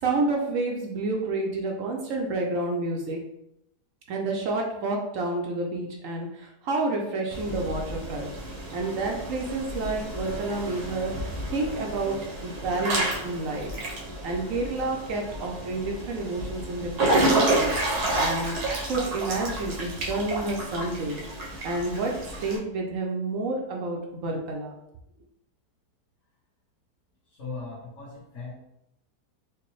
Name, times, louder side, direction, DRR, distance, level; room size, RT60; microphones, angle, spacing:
voice 1, 0.0-3.2 4.1-8.3 8.7-13.7 14.2-18.6 18.9-21.2 21.6-24.7, right 2 dB, 65° right, 1 dB, 0.9 m, -29 dB
Water / Splash splatter / Drip, 7.3-22.6, right 2 dB, 85° right, 1.4 m, -30 dB
voice 2, 27.2-28.5, left 4 dB, 50° left, -9 dB, 1.2 m, -39 dB
4.6 x 2.2 x 3.0 m, 0.81 s
omnidirectional pair, 1.7 m